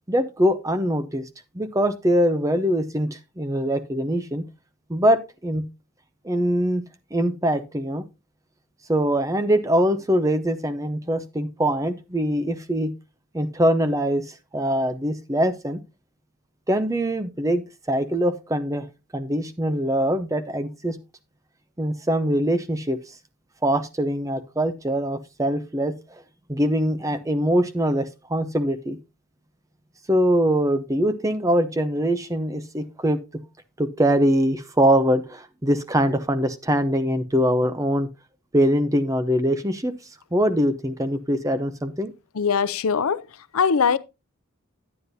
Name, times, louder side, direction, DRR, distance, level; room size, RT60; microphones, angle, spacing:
voice 1, 0.1-1.2 1.5-4.4 4.9-5.6 6.2-6.8 7.1-8.0 8.9-12.9 13.3-14.2 14.5-15.8 16.7-18.9 19.1-21.0 21.8-23.0 23.6-26.2 26.5-29.0 30.1-33.2 33.8-38.1 38.5-39.9 40.3-42.1, equal, 15° right, 0.6 m, -23 dB
voice 2, 42.4-43.2 43.5-44.0, left 6 dB, 80° left, 0.5 m, -21 dB
9.8 x 9.6 x 2.7 m
head